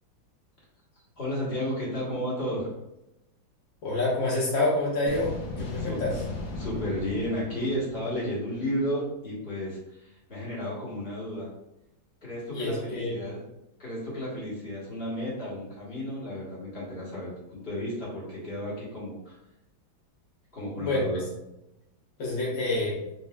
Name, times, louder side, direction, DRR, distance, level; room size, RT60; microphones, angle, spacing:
voice 1, 1.2-2.7 5.8-6.0 6.5-11.5 12.2-13.4 13.8-19.4 20.5-21.2, equal, 30° left, -6 dB, 1.5 m, -33 dB
voice 2, 3.8-5.3 5.7-6.2 12.5-13.2 20.8-21.2 22.2-23.0, left 2 dB, 55° left, -6 dB, 1.2 m, -27 dB
sound 1, 5.1-8.5, left 3 dB, 70° left, 0.7 m, -37 dB
4.0 x 3.9 x 2.4 m, 0.91 s
omnidirectional pair, 2.2 m